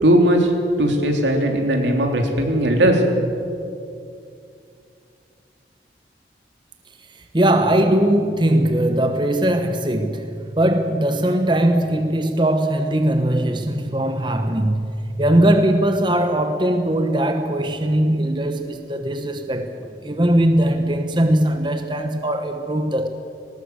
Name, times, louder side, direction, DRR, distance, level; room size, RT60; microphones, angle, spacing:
voice 1, 0.0-0.5 0.8-3.0, right 1 dB, 85° right, 2 dB, 3.4 m, -18 dB
voice 2, 7.3-23.1, right 1 dB, 25° right, 6 dB, 1.0 m, -20 dB
19.0 x 19.0 x 8.2 m, 2.5 s
head